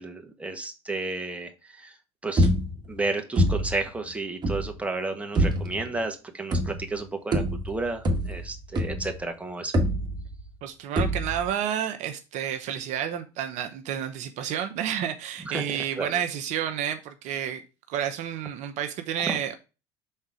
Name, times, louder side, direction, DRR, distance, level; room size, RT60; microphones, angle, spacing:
voice 1, 0.0-1.9 2.2-2.5 2.9-9.7 15.4-16.2 19.3-19.4, right 3 dB, 10° right, 1.2 m, -32 dB
sound 1, 2.4-3.0 3.4-3.9 4.4-4.8 5.3-5.9 6.5-7.0 7.3-9.2 9.7-10.5 11.0-11.5, equal, 30° right, 1.5 m, -25 dB
voice 2, 10.6-17.6 17.9-19.5, right 9 dB, 55° right, 0.8 m, -30 dB
5.5 x 3.7 x 4.8 m
hypercardioid pair, 80°, 14 cm